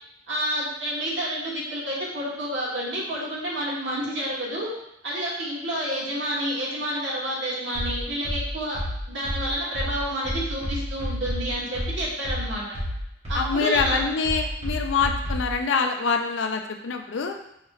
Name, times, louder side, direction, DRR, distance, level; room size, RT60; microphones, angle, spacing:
voice 1, 0.3-4.7 5.0-8.8 9.1-12.8 13.3-14.0, right 1 dB, 80° right, -5 dB, 1.4 m, -29 dB
sound 1, 7.7-15.6, equal, 35° right, 1.2 m, -30 dB
voice 2, 13.3-17.4, left 5 dB, 75° left, 5 dB, 0.5 m, -25 dB
5.2 x 2.9 x 2.4 m, 0.81 s
head